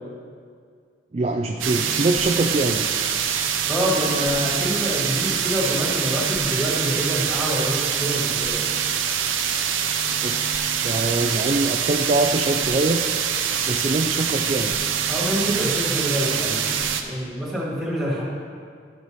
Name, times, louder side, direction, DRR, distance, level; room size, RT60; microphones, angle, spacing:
voice 1, 1.1-2.9 10.2-10.5 10.8-13.0 13.7-14.8, right 2 dB, 30° right, 2 dB, 0.3 m, -23 dB
sound 1, 1.6-17.0, right 8 dB, 85° right, 0.6 m, -24 dB
voice 2, 3.7-8.7 15.1-18.2, equal, ahead, -7 dB, 2.0 m, -27 dB
12.0 x 4.1 x 6.2 m, 2.1 s
head